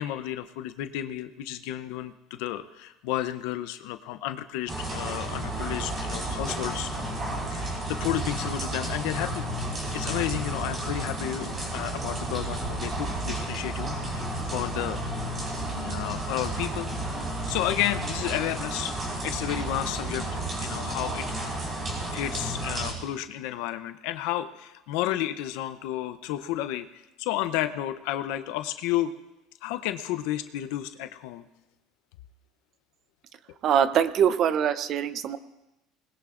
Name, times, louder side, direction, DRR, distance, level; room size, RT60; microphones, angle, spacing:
voice 1, 0.0-6.9 7.5-9.5 9.9-15.0 15.7-16.9 17.5-19.0 19.2-21.7 22.1-29.1 29.6-31.4 33.5-33.6, left 13 dB, 80° left, 10 dB, 0.6 m, -32 dB
sound 1, 4.7-22.9, right 1 dB, 25° right, 4.4 m, -32 dB
voice 2, 33.6-35.4, right 8 dB, 45° right, 13 dB, 0.7 m, -23 dB
20.5 x 20.0 x 2.5 m, 0.96 s
cardioid pair, 140°, 0 cm